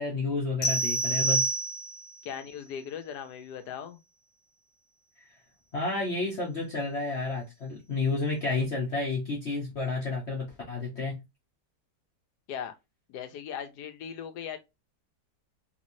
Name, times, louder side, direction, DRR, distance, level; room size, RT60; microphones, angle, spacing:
voice 1, 0.0-1.5 5.7-11.2, left 3 dB, 50° left, 1.0 m, -31 dB
sound 1, 0.6-2.2, right 2 dB, 90° left, 1.6 m, -27 dB
voice 2, 2.2-4.0 12.5-12.7 13.1-14.6, left 8 dB, 70° left, 1.2 m, -38 dB
3.4 x 3.1 x 2.6 m
omnidirectional pair, 1.9 m